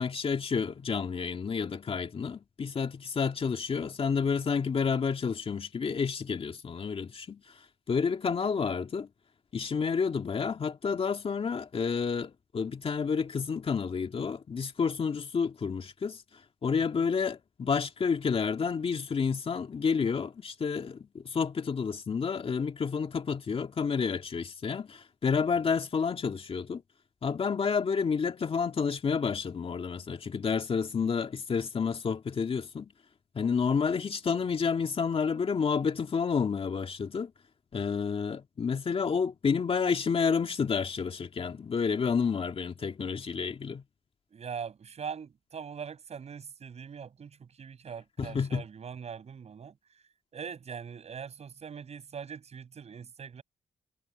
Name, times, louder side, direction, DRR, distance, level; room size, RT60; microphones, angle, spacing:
voice 1, 0.0-9.1 9.5-26.8 27.2-32.9 33.3-37.3 37.7-43.8 48.2-48.6, left 5 dB, 45° left, 2.4 m, -30 dB
voice 2, 16.7-17.1 44.3-49.8 50.3-53.4, right 7 dB, 55° right, 7.6 m, -42 dB
cardioid pair, 85°, 13 cm